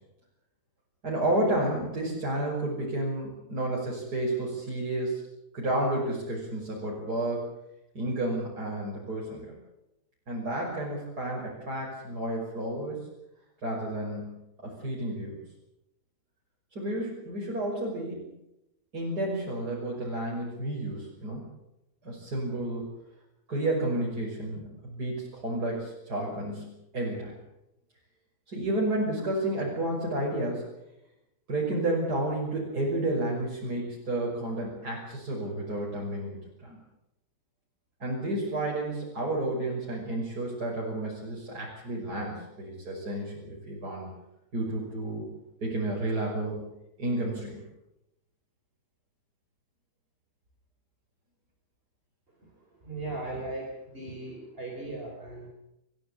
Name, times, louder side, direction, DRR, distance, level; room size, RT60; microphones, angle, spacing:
voice 1, 1.0-5.2 5.5-7.5 7.9-9.5 10.3-13.0 13.6-15.4 16.7-18.3 18.9-21.5 22.0-22.8 23.5-27.3 28.5-30.7 31.5-36.8 38.0-44.1 44.5-45.3 45.6-46.7 47.0-47.6, right 1 dB, 70° right, -4 dB, 6.5 m, -31 dB
voice 2, 52.8-55.5, right 2 dB, 35° right, 0 dB, 4.4 m, -37 dB
29.5 x 15.0 x 8.3 m, 0.88 s
omnidirectional pair, 1.8 m